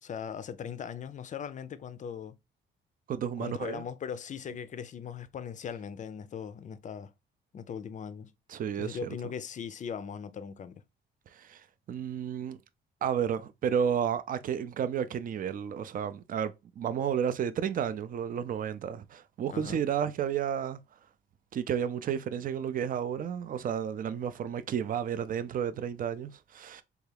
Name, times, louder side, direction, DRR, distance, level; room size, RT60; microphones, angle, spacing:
voice 1, 0.0-2.4 3.4-7.1 7.5-8.3 8.8-10.8 19.5-19.8, left 7 dB, 40° left, 0.4 m, -39 dB
voice 2, 3.1-3.8 8.5-9.1 11.3-12.6 13.0-20.8 21.5-26.8, right 8 dB, 45° right, 0.4 m, -32 dB
3.4 x 2.3 x 3.3 m
cardioid pair, 90°, 20 cm